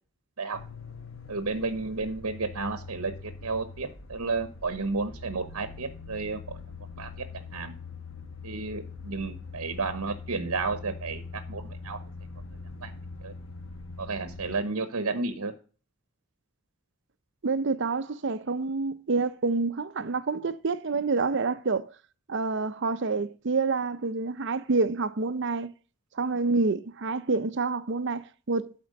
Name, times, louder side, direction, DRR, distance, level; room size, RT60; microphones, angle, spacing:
sound 1, 0.5-14.6, left 4 dB, 65° left, 1.1 m, -43 dB
voice 1, 1.3-6.6 7.0-7.7 8.4-12.0 12.8-12.9 13.2-13.3 14.0-15.5, right 3 dB, 75° right, 0.9 m, -32 dB
voice 2, 17.4-21.9 22.3-25.7 26.1-28.7, right 4 dB, 55° right, 0.6 m, -28 dB
12.0 x 4.4 x 6.4 m
head